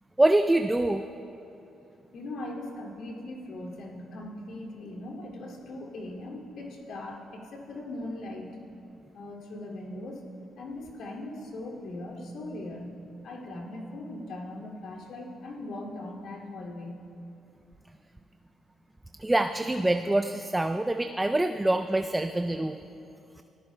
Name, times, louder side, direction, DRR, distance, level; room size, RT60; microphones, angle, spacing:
voice 1, 0.2-1.0 19.2-22.8, right 1 dB, 10° right, 8 dB, 0.4 m, -25 dB
voice 2, 2.1-8.5 9.1-10.3 10.6-13.0 13.2-17.1, left 1 dB, 75° left, -3 dB, 2.4 m, -39 dB
22.5 x 14.0 x 2.2 m, 2.7 s
cardioid pair, 90°, 0 cm